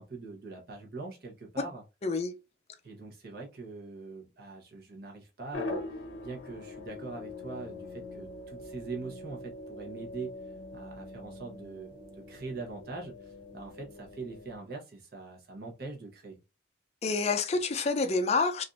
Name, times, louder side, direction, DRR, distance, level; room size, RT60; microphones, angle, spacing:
voice 1, 0.0-1.8 2.8-5.8 6.2-10.3 10.7-16.4, right 3 dB, 50° right, 0.9 m, -42 dB
voice 2, 2.0-2.3 17.0-18.6, left 4 dB, 35° left, 0.4 m, -28 dB
sound 1, 5.5-14.6, left 2 dB, 80° left, 0.8 m, -43 dB
3.3 x 2.5 x 2.4 m
head